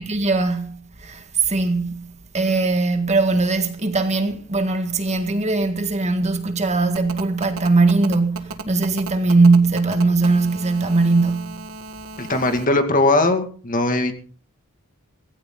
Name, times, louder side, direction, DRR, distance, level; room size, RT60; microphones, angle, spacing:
voice 1, 0.0-2.1 2.3-11.6, right 3 dB, 30° right, 1.8 m, -20 dB
Telephone, 7.0-12.7, right 3 dB, 65° right, 1.6 m, -35 dB
voice 2, 12.2-14.1, left 2 dB, 40° left, 2.3 m, -19 dB
17.5 x 16.5 x 4.0 m
head